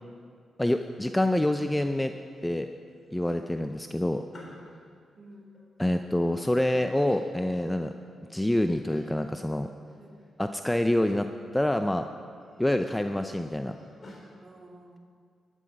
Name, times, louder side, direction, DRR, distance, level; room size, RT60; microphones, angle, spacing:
voice 1, 0.6-2.1 2.4-2.7 3.1-4.2 5.8-7.9 8.3-9.7 10.4-11.3 11.5-12.1 12.6-13.8, left 1 dB, 10° left, 7 dB, 0.5 m, -26 dB
sound 1, 2.0-2.5 2.8-4.8 5.3-6.5 7.1-7.9 8.3-8.4 8.9-9.2 9.6-10.3 10.6-11.1 11.5-12.0 12.4-14.3, left 1 dB, 45° left, 3.7 m, -53 dB
voice 2, 5.2-6.0 10.0-10.3 14.4-15.0, right 1 dB, 40° right, 3 dB, 1.8 m, -52 dB
12.0 x 11.0 x 5.3 m, 2.2 s
supercardioid pair, 55°, 0 cm